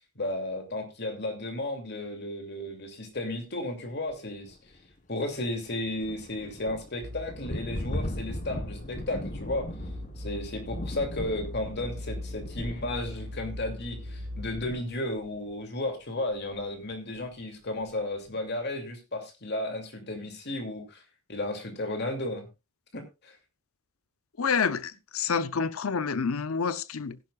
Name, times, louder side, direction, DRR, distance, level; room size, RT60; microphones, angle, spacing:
voice 1, 0.0-4.6 5.1-9.7 10.2-21.0 21.3-22.5 22.9-23.4, left 1 dB, 50° left, 2.7 m, -34 dB
sound 1, 4.1-4.2 4.4-15.5 16.5-16.6 16.9-17.2, left 1 dB, 35° left, 1.2 m, -39 dB
sound 2, 7.0-14.6, left 1 dB, 65° right, 1.7 m, -40 dB
voice 2, 24.4-27.2, left 5 dB, 80° left, 0.7 m, -28 dB
17.0 x 11.0 x 2.4 m
head